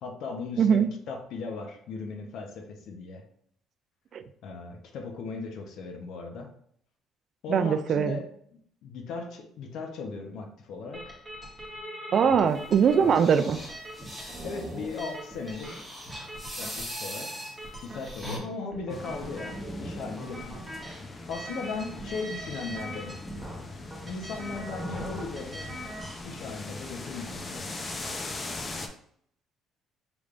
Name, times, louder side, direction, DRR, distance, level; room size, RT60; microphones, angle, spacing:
voice 1, 0.0-3.2 4.4-6.5 7.4-8.3 8.5-11.0 12.2-12.5 12.9-13.2 14.4-15.9 16.6-17.3 17.8-20.6 21.3-23.2 24.1-25.7 26.2-28.2, left 4 dB, 70° left, 3 dB, 0.9 m, -37 dB
voice 2, 7.5-8.2 12.1-13.6, right 7 dB, 50° right, 11 dB, 0.3 m, -22 dB
sound 1, 10.9-26.2, right 1 dB, 15° right, 1.0 m, -42 dB
sound 2, 12.5-18.4, equal, 5° left, 1.6 m, -42 dB
sound 3, 18.9-28.9, left 2 dB, 25° left, 0.6 m, -40 dB
5.0 x 3.4 x 2.5 m, 0.64 s
cardioid pair, 115°, 0 cm